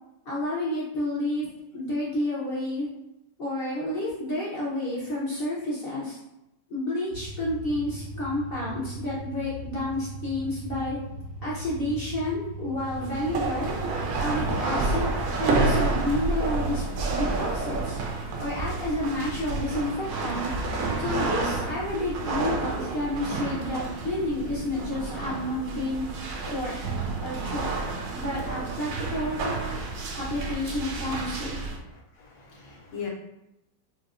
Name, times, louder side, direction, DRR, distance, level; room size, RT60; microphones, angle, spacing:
voice 1, 0.3-1.5 1.7-2.9 3.4-6.2 6.7-11.0 11.4-18.0 18.4-20.5 21.0-26.0 26.5-26.7 27.2-27.8 28.1-29.4 30.2-31.6, left 1 dB, 60° left, -7 dB, 0.6 m, -30 dB
sound 1, 7.1-16.1, right 1 dB, 90° right, 0.5 m, -39 dB
sound 2, 12.8-31.8, right 3 dB, 70° right, 1.0 m, -30 dB
voice 2, 31.9-33.1, left 6 dB, 80° left, -3 dB, 1.4 m, -39 dB
4.4 x 2.1 x 2.4 m, 0.87 s
omnidirectional pair, 1.9 m